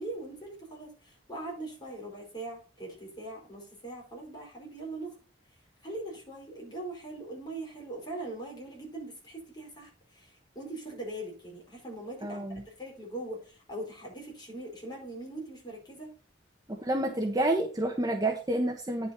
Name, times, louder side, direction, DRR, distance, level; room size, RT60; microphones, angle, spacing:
voice 1, 0.0-5.2 5.8-10.3 10.5-16.1, right 2 dB, 25° left, -1 dB, 4.9 m, -41 dB
voice 2, 12.2-12.6 16.8-19.1, right 1 dB, 20° right, 3 dB, 1.1 m, -29 dB
9.8 x 6.2 x 4.4 m, 0.34 s
head